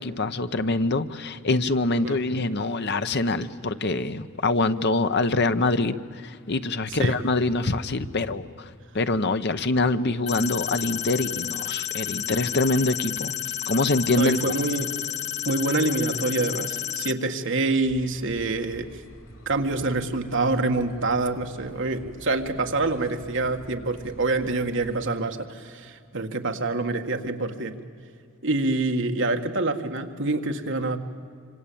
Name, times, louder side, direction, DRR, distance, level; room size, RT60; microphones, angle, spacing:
voice 1, 0.0-8.7 8.9-13.3 13.7-14.4, left 2 dB, 55° left, 11 dB, 1.0 m, -25 dB
sound 1, 10.3-17.1, left 11 dB, 30° left, 1.0 m, -31 dB
voice 2, 14.2-14.9 15.5-19.0 19.5-27.8 28.4-31.0, right 2 dB, 60° right, 5 dB, 1.8 m, -26 dB
sound 2, 17.8-25.1, equal, 80° left, 4.8 m, -47 dB
26.5 x 26.0 x 8.7 m, 2.3 s
head